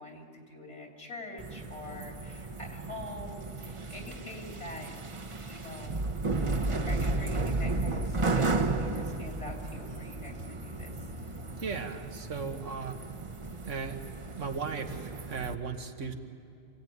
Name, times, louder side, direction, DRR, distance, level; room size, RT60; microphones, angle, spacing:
voice 1, 0.0-4.9 5.5-6.0 6.9-11.1, left 1 dB, 70° left, 1 dB, 3.5 m, -45 dB
sound 1, 1.4-15.5, right 3 dB, 30° right, 0.8 m, -34 dB
sound 2, 6.8-11.9, left 3 dB, 55° right, 2.0 m, -48 dB
voice 2, 11.6-13.0 13.7-14.0 14.4-16.1, right 5 dB, 85° right, 5 dB, 1.7 m, -36 dB
27.0 x 16.5 x 9.4 m, 2.4 s
omnidirectional pair, 1.2 m